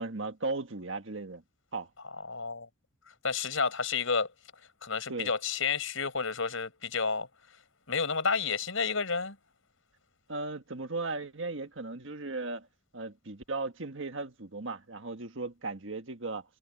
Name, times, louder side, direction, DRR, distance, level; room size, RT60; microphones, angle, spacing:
voice 1, 0.0-1.4 1.7-1.9 5.1-5.3 10.3-12.7 12.9-16.4, right 3 dB, 65° right, 1.7 m, -36 dB
voice 2, 2.3-2.7 3.2-4.3 4.8-7.3 7.9-9.4, left 5 dB, 75° left, 5.0 m, -30 dB
head